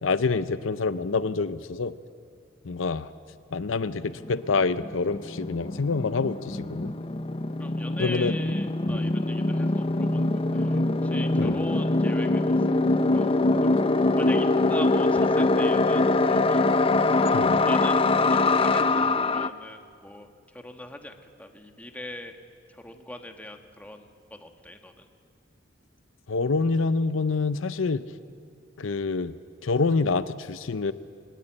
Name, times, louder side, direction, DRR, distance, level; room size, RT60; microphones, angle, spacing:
voice 1, 0.0-1.9 2.6-3.1 3.5-6.9 8.0-8.3 8.9-9.0 11.4-11.6 17.3-17.6 26.3-28.0 28.8-29.3 29.6-30.9, left 4 dB, 75° left, 13 dB, 0.6 m, -26 dB
sound 1, 4.0-4.1 4.2-19.5, left 2 dB, 30° left, 0.6 m, -23 dB
voice 2, 7.6-12.8 13.1-13.3 13.6-13.9 14.2-16.6 17.6-22.4 22.7-25.1, left 1 dB, 10° left, 5 dB, 1.4 m, -41 dB
23.0 x 19.5 x 8.9 m, 2.2 s
head